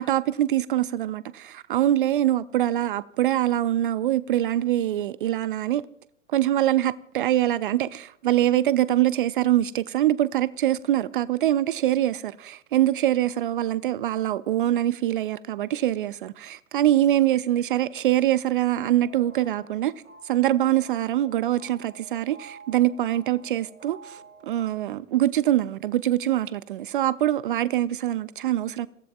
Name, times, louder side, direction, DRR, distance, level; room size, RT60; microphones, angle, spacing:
voice 1, 0.0-5.8 6.3-19.9 20.2-28.9, right 13 dB, 45° right, 0.5 m, -24 dB
sound 1, 18.8-24.7, right 4 dB, 80° right, 2.0 m, -50 dB
29.0 x 17.0 x 2.3 m
figure-of-eight pair, 100°, 37 cm